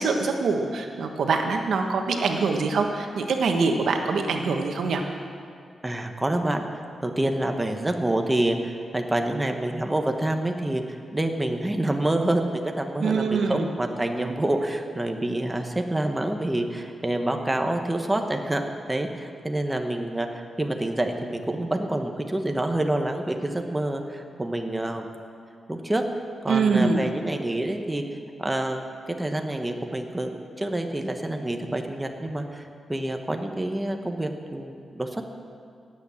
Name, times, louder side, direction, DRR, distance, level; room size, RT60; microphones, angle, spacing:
voice 1, 0.0-5.0 13.0-13.7 26.5-27.0, right 4 dB, 80° right, 4 dB, 1.4 m, -24 dB
voice 2, 5.8-6.6 7.0-25.1 25.7-26.0 26.4-28.0 28.4-28.9 29.2-35.2, right 1 dB, 10° right, 4 dB, 1.1 m, -27 dB
17.5 x 8.6 x 7.2 m, 2.3 s
wide cardioid pair, 110°, 0 cm